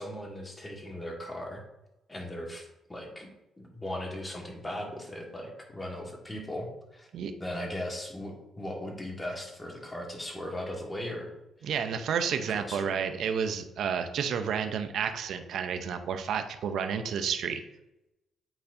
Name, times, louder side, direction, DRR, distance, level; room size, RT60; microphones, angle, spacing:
voice 1, 0.0-1.6 2.1-3.3 3.6-7.1 7.4-11.3 12.5-12.9, left 1 dB, 15° left, 1 dB, 1.5 m, -38 dB
voice 2, 11.6-17.6, right 7 dB, 70° right, 7 dB, 0.6 m, -31 dB
8.9 x 4.1 x 2.6 m, 0.91 s
cardioid pair, 90°, 0 cm